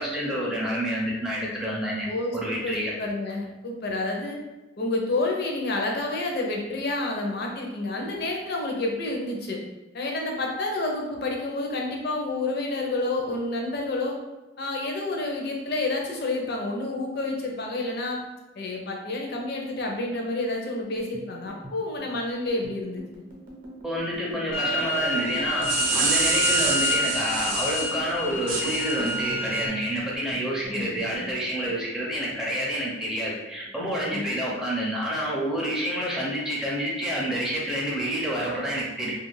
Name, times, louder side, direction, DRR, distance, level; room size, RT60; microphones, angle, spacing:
voice 1, 0.0-2.1 2.3-2.9 23.8-39.1, equal, 5° right, -5 dB, 0.4 m, -28 dB
voice 2, 2.1-4.4 4.8-9.6 9.9-14.2 14.6-18.2 18.6-23.0 30.7-31.2 34.1-34.3, left 2 dB, 55° left, 1 dB, 0.5 m, -29 dB
sound 1, 20.8-33.4 33.6-34.7 35.0-35.3 35.6-36.3, equal, 45° right, 0.6 m, -44 dB
sound 2, 24.5-29.7, left 2 dB, 85° left, 0.8 m, -28 dB
sound 3, 25.4-27.9 28.5-29.1, right 4 dB, 90° right, 0.4 m, -27 dB
2.4 x 2.4 x 3.1 m, 1.1 s
head